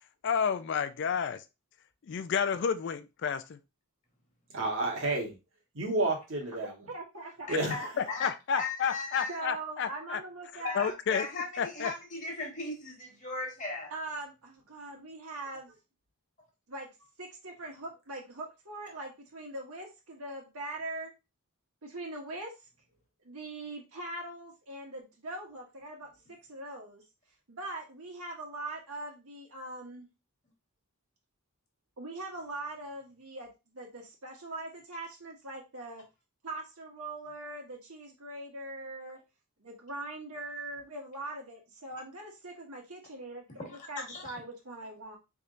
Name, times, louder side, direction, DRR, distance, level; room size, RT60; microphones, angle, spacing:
voice 1, 0.2-1.4 2.1-3.6 8.0-10.2 10.7-11.3 11.6-11.9, left 7 dB, 55° left, 0.3 m, -30 dB
voice 2, 4.5-5.3 5.7-6.7 7.5-7.8, right 2 dB, 60° right, 1.3 m, -30 dB
voice 3, 6.9-7.5 8.0-8.1 9.3-10.9 13.9-15.7 16.7-16.9 17.2-21.1 21.8-22.5 23.2-27.0 27.5-30.1 32.0-36.0 36.4-39.2 39.6-45.2, right 2 dB, 85° right, 1.4 m, -41 dB
voice 4, 7.5-9.4 10.6-13.9 43.6-44.3, left 3 dB, 35° left, 1.3 m, -37 dB
4.2 x 3.4 x 2.5 m
head